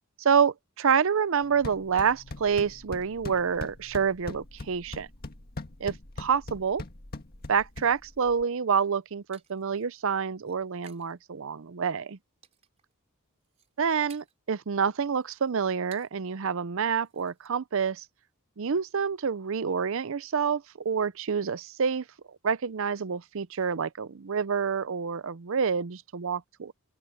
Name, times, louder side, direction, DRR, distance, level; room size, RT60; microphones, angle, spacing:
voice 1, 0.2-5.1 5.8-6.8 7.5-12.2 13.8-18.0 18.6-22.0 22.4-26.7, right 6 dB, 65° right, 0.6 m, -28 dB
sound 1, 1.4-8.4, left 2 dB, 45° left, 1.8 m, -42 dB
sound 2, 8.6-11.2 11.5-12.0 12.4-12.9 13.3-14.5 14.9-16.3 16.6-16.7 17.0-17.5, right 6 dB, 30° right, 3.9 m, -58 dB
open air
head